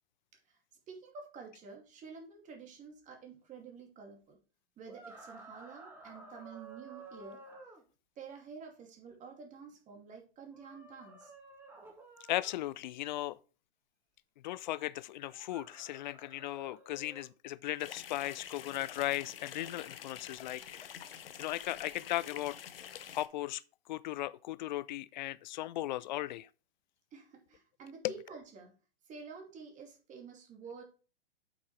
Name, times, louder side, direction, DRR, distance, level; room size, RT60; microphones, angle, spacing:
voice 1, 0.9-4.4 4.8-7.4 8.2-11.3 27.1-28.7 29.0-30.8, right 5 dB, 25° right, 2.5 m, -50 dB
sound 1, 4.9-7.8 10.5-12.6 15.2-17.3, right 3 dB, 5° right, 2.1 m, -53 dB
voice 2, 12.3-13.4 14.4-20.9 21.4-22.6 23.1-23.6 23.9-26.5 28.0-28.1, left 15 dB, 50° left, 0.5 m, -37 dB
sound 2, 17.8-23.3, left 9 dB, 70° left, 1.0 m, -47 dB
8.2 x 6.3 x 3.2 m
hypercardioid pair, 110°, 30 cm